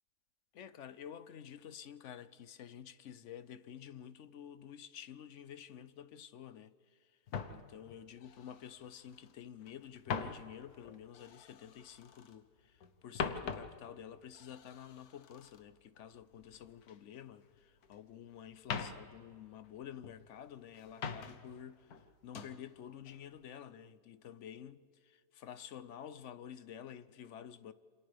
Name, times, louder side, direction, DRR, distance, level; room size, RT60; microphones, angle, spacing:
voice 1, 0.5-7.2 7.5-27.7, left 9 dB, 60° left, 0.9 m, -50 dB
sound 1, 7.3-9.3 9.6-12.4 12.8-17.0 17.3-18.2 18.5-20.3 20.7-21.6 21.9-22.6 23.1-23.4, left 6 dB, 85° left, 1.5 m, -44 dB
28.5 x 27.0 x 3.4 m
omnidirectional pair, 1.6 m